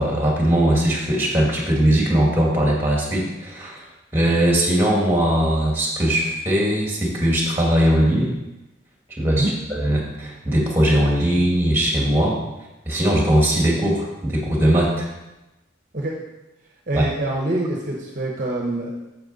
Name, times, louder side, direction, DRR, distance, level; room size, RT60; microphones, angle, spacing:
voice 1, 0.0-3.9 4.1-8.3 9.2-12.4 12.9-15.1 16.9-17.1, right 1 dB, 10° right, -2 dB, 2.0 m, -20 dB
voice 2, 16.9-18.9, right 1 dB, 40° right, -1 dB, 1.0 m, -25 dB
8.7 x 7.0 x 4.1 m, 0.98 s
head